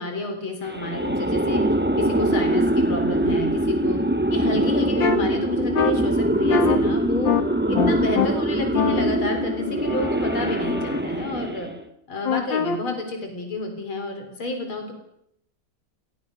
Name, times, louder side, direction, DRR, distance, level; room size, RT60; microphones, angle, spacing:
voice 1, 0.0-1.6 2.0-4.0 4.3-7.3 7.7-11.7 12.1-14.9, left 2 dB, 85° left, 5 dB, 4.6 m, -30 dB
sound 1, 0.7-11.8, right 1 dB, 10° right, 0.7 m, -23 dB
sound 2, 5.0-5.2 5.7-5.9 6.5-6.8 7.2-7.4 7.7-8.3 8.7-11.0 12.2-12.8, left 7 dB, 65° left, 2.5 m, -24 dB
28.5 x 19.0 x 6.3 m, 0.75 s
omnidirectional pair, 2.2 m